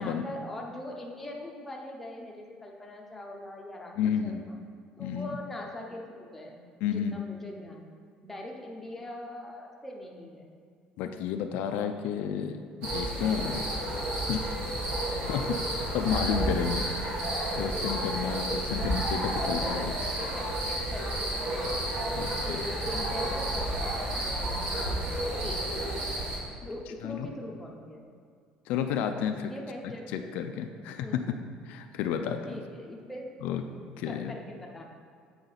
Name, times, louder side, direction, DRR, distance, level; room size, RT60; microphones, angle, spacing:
voice 1, 0.0-4.5 5.0-7.8 8.2-10.5 18.7-18.9 19.4-21.9 22.4-23.9 24.1-26.2 26.6-28.1 29.5-30.3 31.0-31.4 32.4-33.3 34.0-34.9, left 1 dB, 5° left, -1 dB, 0.7 m, -42 dB
voice 2, 4.0-4.4 5.0-5.4 6.8-7.2 11.0-13.6 14.3-14.4 15.3-16.8 17.6-19.8 22.1-22.6 27.0-27.3 28.7-29.5 30.1-31.3 31.7-32.4 33.4-33.6 34.0-34.3, left 8 dB, 70° left, 6 dB, 0.4 m, -31 dB
sound 1, 12.8-26.4, right 1 dB, 60° right, 1.8 m, -31 dB
8.1 x 4.8 x 4.0 m, 2.1 s
cardioid pair, 170°, 3 cm